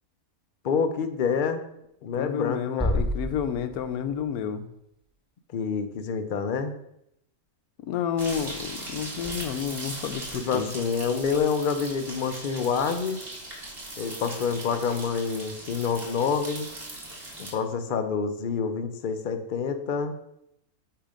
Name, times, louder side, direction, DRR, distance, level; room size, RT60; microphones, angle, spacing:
voice 1, 0.6-1.6 2.0-3.0 5.5-6.8 10.3-13.2 14.0-16.7 17.4-20.2, left 6 dB, 65° left, 8 dB, 0.5 m, -27 dB
voice 2, 2.2-4.7 7.8-10.7, left 8 dB, 85° left, 10 dB, 1.1 m, -30 dB
sound 1, 2.8-4.7, equal, 5° right, 0.5 m, -30 dB
sound 2, 8.2-17.5, right 2 dB, 40° right, 1.8 m, -39 dB
8.5 x 2.9 x 5.0 m, 0.78 s
omnidirectional pair, 1.5 m